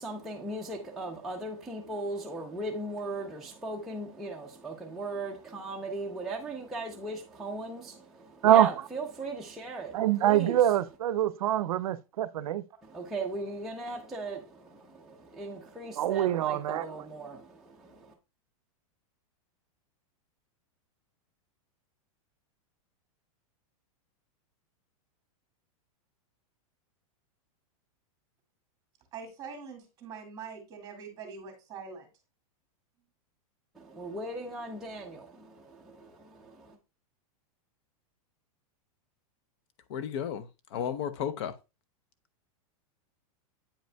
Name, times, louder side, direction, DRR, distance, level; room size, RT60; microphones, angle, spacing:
voice 1, 0.0-10.6 12.8-18.1 33.7-36.8, right 2 dB, ahead, 0.6 m, -38 dB
voice 2, 9.9-12.6 16.0-16.9, right 12 dB, 90° right, 0.5 m, -24 dB
voice 3, 29.1-32.1, right 5 dB, 20° right, 1.8 m, -43 dB
voice 4, 39.9-41.5, left 8 dB, 50° left, 0.6 m, -33 dB
8.6 x 5.2 x 2.2 m
supercardioid pair, 160°, 18 cm